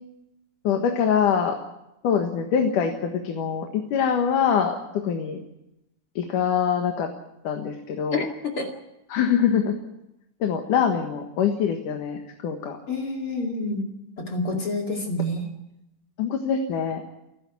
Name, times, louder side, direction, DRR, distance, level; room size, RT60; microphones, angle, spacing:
voice 1, 0.6-1.6 2.0-5.4 6.2-7.1 7.4-8.3 9.1-9.8 10.4-12.8 16.2-17.0, left 7 dB, 80° left, 4 dB, 3.1 m, -24 dB
voice 2, 8.1-8.7 12.9-13.8 14.3-15.4, left 1 dB, 45° left, 1 dB, 3.1 m, -28 dB
28.5 x 11.0 x 9.8 m, 0.90 s
omnidirectional pair, 3.6 m